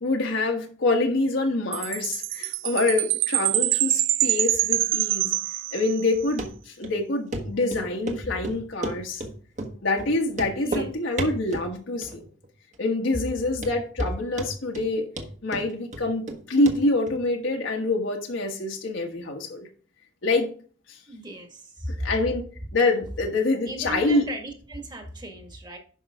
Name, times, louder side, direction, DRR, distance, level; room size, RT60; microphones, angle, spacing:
voice 1, 0.0-5.4 5.7-9.2 9.8-12.3 12.8-15.1 15.4-19.7 20.2-20.5 20.9-21.0 22.0-22.4 22.7-24.2, left 2 dB, 80° left, 1 dB, 1.5 m, -26 dB
Chime, 1.7-6.2, right 16 dB, 70° right, 0.4 m, -25 dB
Run, 6.4-6.5 6.8-6.9 7.3-7.4 7.7-8.2 8.4-9.3 9.6-9.7 10.0-10.1 10.3-10.9 11.2-11.7 12.0-12.5 12.7-12.8 13.3-13.4 13.6-14.1 14.4-14.9 15.2-16.4 16.7-16.8 17.1-17.2, right 2 dB, 40° right, 1.4 m, -32 dB
voice 2, 10.6-10.9 21.1-22.1 23.7-25.8, right 1 dB, 25° right, 3 dB, 1.8 m, -36 dB
10.5 x 5.6 x 3.6 m, 0.42 s
head